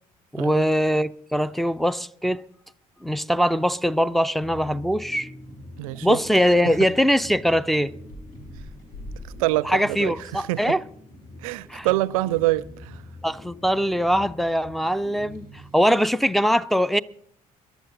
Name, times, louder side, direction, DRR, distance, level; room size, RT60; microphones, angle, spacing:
voice 1, 0.3-2.4 3.0-5.3 6.0-7.9 9.6-10.8 11.7-11.9 13.2-17.0, equal, ahead, 0.5 m, -22 dB
sound 1, 4.4-16.3, left 1 dB, 40° left, 7.8 m, -44 dB
Chewing mastication, 5.4-5.9 6.2-6.5 6.9-10.7 11.0-16.4, left 1 dB, 80° left, 3.4 m, -47 dB
voice 2, 5.8-6.2 9.4-10.6 11.4-13.0, right 18 dB, 65° right, 0.5 m, -25 dB
22.5 x 11.5 x 3.9 m
figure-of-eight pair, 50°, 19 cm